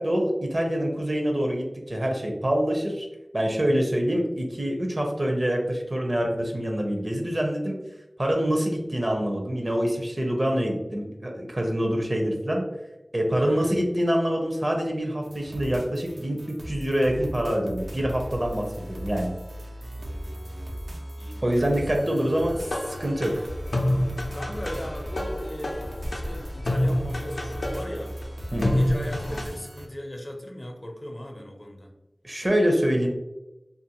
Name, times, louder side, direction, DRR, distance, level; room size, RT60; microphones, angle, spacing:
voice 1, 0.0-3.1 3.3-7.8 8.2-12.6 13.1-19.3 21.4-22.5 23.0-23.4 28.5-28.8 32.2-33.1, equal, 45° right, 1 dB, 0.6 m, -25 dB
voice 2, 13.3-13.8 19.9-20.9 21.2-22.2 24.3-28.1 28.7-31.9, equal, 35° left, 2 dB, 0.5 m, -39 dB
sound 1, 15.2-29.9, equal, 80° right, 0.4 m, -38 dB
sound 2, 22.5-29.4, left 1 dB, 85° left, 0.5 m, -28 dB
2.5 x 2.4 x 2.8 m, 0.95 s
wide cardioid pair, 45°, 0 cm